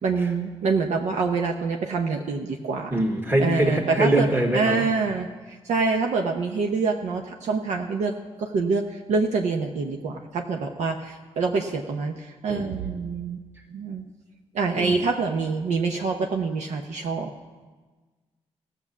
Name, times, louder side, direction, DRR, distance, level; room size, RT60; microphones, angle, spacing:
voice 1, 0.0-3.0 3.4-8.1 8.4-13.4 13.7-14.1 14.5-17.3, right 4 dB, 85° right, 2 dB, 0.8 m, -26 dB
voice 2, 2.9-4.8 12.5-12.9 14.8-14.9, right 1 dB, 15° right, -1 dB, 1.6 m, -23 dB
15.5 x 6.8 x 7.2 m, 1.3 s
cardioid pair, 65°, 12 cm